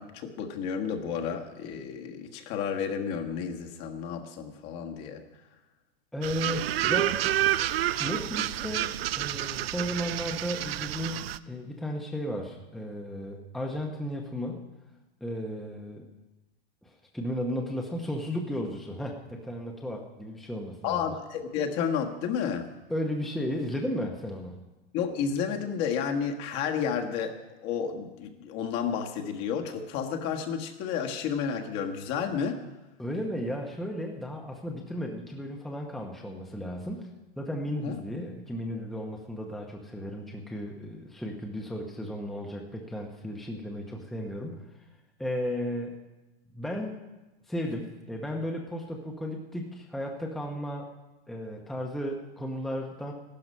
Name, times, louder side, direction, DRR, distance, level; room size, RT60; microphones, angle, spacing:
voice 1, 0.0-5.2 20.8-22.7 24.9-27.4 27.6-32.6 37.8-38.0, left 7 dB, 35° left, 3 dB, 1.5 m, -31 dB
voice 2, 6.1-7.3 8.0-14.6 15.2-16.1 16.8-21.1 22.9-24.6 33.0-37.1 37.4-44.8 45.2-46.0 46.5-47.0 47.5-50.9 51.3-53.1, equal, ahead, 1 dB, 0.9 m, -34 dB
sound 1, 6.2-11.4, right 13 dB, 80° right, 0.6 m, -29 dB
14.5 x 12.0 x 5.5 m, 1.1 s
supercardioid pair, 155°, 30 cm